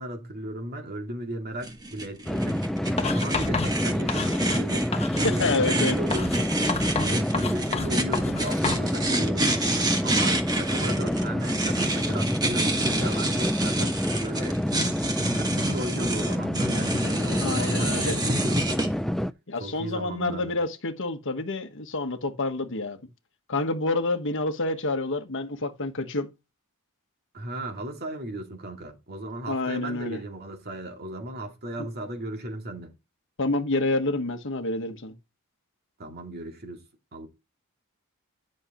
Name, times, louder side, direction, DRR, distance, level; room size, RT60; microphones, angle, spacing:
voice 1, 0.0-2.6 3.0-6.5 7.0-9.6 10.0-14.6 15.1-18.9 19.6-20.6 27.3-32.9 36.0-36.8 37.1-37.3, right 1 dB, 45° right, 2.4 m, -36 dB
sound 1, 1.6-18.9, right 2 dB, 20° right, 1.5 m, -29 dB
sound 2, 2.3-19.3, equal, ahead, 0.3 m, -28 dB
Writing, 3.0-4.7 4.9-5.5 6.1-8.9, left 4 dB, 30° left, 1.2 m, -30 dB
voice 2, 5.2-6.0 17.4-18.2 19.5-23.0 23.5-26.3 29.5-30.2 33.4-35.1, left 2 dB, 60° left, 1.2 m, -28 dB
10.5 x 6.4 x 3.0 m
head